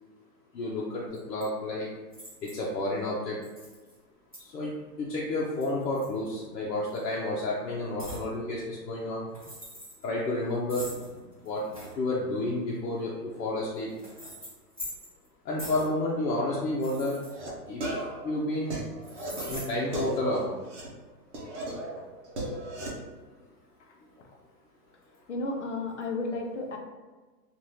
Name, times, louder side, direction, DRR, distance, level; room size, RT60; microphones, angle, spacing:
voice 1, 0.5-1.9 2.4-3.4 4.4-4.7 5.0-9.3 10.0-10.9 11.4-11.6 11.9-13.9 15.4-17.2 17.7-17.8 18.2-18.8 19.5-20.5, left 2 dB, 70° left, -5 dB, 0.8 m, -30 dB
sound 1, 1.1-1.4 2.1-2.7 3.4-3.9 4.3-4.4 5.4-6.5 6.9-7.1 8.0-8.3 9.2-10.0 10.7-11.9 13.0-15.3 15.6-15.9 16.7-18.0 19.0-19.6, equal, 25° right, 0.4 m, -43 dB
sound 2, 16.4-16.6 17.1-17.5 17.8-20.9 21.3-22.9, right 1 dB, 45° right, 0.8 m, -36 dB
voice 2, 25.3-26.8, left 2 dB, 45° left, 1 dB, 0.5 m, -32 dB
3.3 x 2.5 x 2.7 m, 1.3 s
hypercardioid pair, 170°, 50 cm